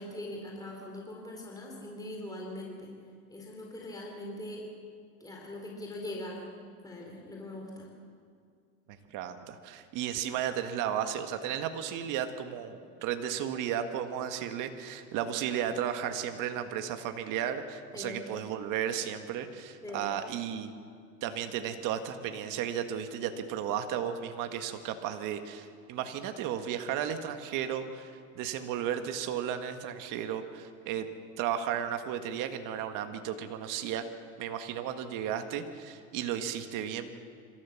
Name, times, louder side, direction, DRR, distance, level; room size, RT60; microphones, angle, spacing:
voice 1, 0.0-2.9 3.3-4.6 5.2-6.4 6.8-7.9 17.9-18.2 19.8-20.1, left 1 dB, 10° left, -1 dB, 4.0 m, -41 dB
voice 2, 8.9-20.7 21.2-31.1 31.4-34.1 34.4-37.1, right 9 dB, 55° right, 7 dB, 1.8 m, -34 dB
26.5 x 14.0 x 7.2 m, 2.2 s
supercardioid pair, 110°, 38 cm